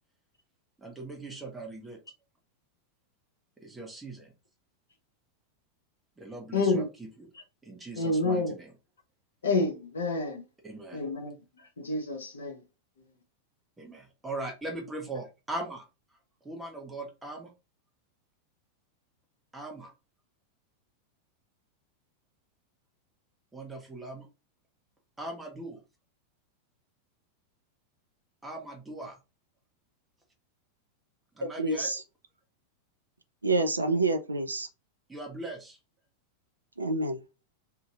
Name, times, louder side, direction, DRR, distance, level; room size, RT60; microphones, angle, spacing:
voice 1, 0.8-2.0 3.6-4.3 6.2-7.3 7.6-8.7 10.6-11.0 13.8-15.9 16.4-17.5 19.5-19.9 23.5-24.3 25.2-25.8 28.4-29.2 31.3-31.9 35.1-35.8, right 2 dB, 10° right, 1.0 m, -40 dB
voice 2, 6.5-6.9 8.0-8.5 9.4-10.4 10.9-11.4 11.8-12.6, left 3 dB, 65° left, 0.7 m, -28 dB
voice 3, 31.4-32.0 33.4-34.7 36.8-37.2, right 2 dB, 80° right, 0.4 m, -28 dB
2.8 x 2.6 x 2.4 m
figure-of-eight pair, 90°, 0 cm